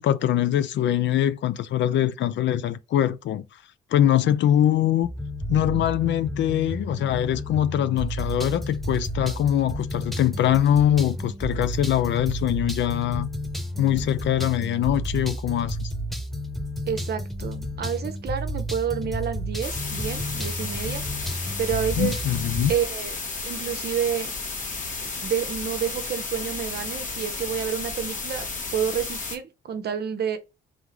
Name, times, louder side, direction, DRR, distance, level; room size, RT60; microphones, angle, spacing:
voice 1, 0.0-3.4 3.9-5.1 5.5-13.3 13.8-15.9 22.0-22.7, left 11 dB, 65° left, 0.5 m, -23 dB
sound 1, 5.0-22.8, equal, ahead, 0.6 m, -32 dB
voice 2, 16.9-21.0 21.6-22.2 22.7-23.1 23.4-24.3 25.0-28.5 28.7-30.4, right 8 dB, 55° right, 0.8 m, -29 dB
sound 2, 19.6-29.4, left 4 dB, 40° left, 1.2 m, -33 dB
3.7 x 3.5 x 3.0 m
cardioid pair, 90°, 20 cm